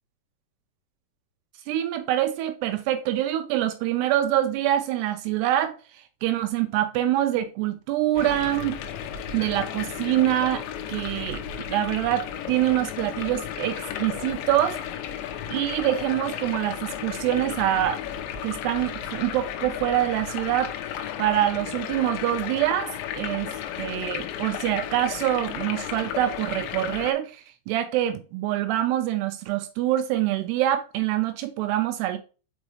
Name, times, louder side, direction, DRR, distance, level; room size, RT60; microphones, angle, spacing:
voice 1, 1.7-5.7 6.2-8.8 9.3-11.4 11.7-14.8 15.5-18.0 18.4-20.7 21.2-23.5 23.8-32.2, right 13 dB, 80° right, 2.6 m, -25 dB
sound 1, 8.2-27.1, left 9 dB, 90° left, 3.2 m, -34 dB
6.3 x 5.1 x 3.2 m
omnidirectional pair, 5.0 m